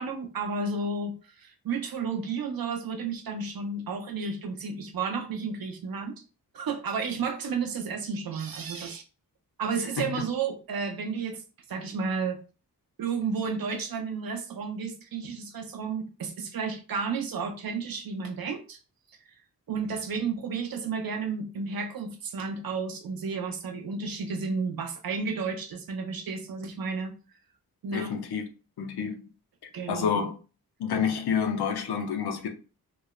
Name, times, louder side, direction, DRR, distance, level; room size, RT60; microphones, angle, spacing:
voice 1, 0.0-6.1 6.5-9.0 9.6-11.4 11.7-12.4 13.0-18.8 19.7-27.1 27.8-28.2 29.7-30.3, right 5 dB, 70° right, 0.6 m, -32 dB
voice 2, 27.9-28.4 28.8-29.2 29.9-30.3 30.8-32.5, left 7 dB, 85° left, 0.6 m, -28 dB
3.0 x 2.0 x 2.2 m
cardioid pair, 60°, 38 cm